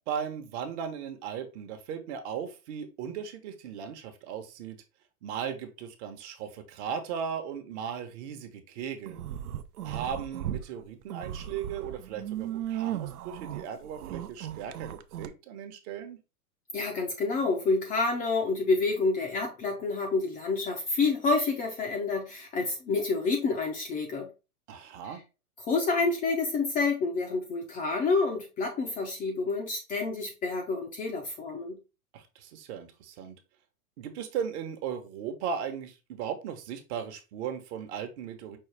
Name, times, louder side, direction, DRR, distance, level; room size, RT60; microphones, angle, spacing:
voice 1, 0.1-4.8 5.2-9.2 9.8-16.2 24.7-25.2 32.1-33.4 34.0-38.6, right 7 dB, 45° right, 1.0 m, -37 dB
sound 1, 9.1-10.6 11.0-15.3, right 11 dB, 75° right, 0.7 m, -36 dB
voice 2, 16.7-24.3 25.0-25.2 25.6-31.8, left 3 dB, 20° left, 0.5 m, -28 dB
5.4 x 2.4 x 3.3 m
hypercardioid pair, 125°, 46 cm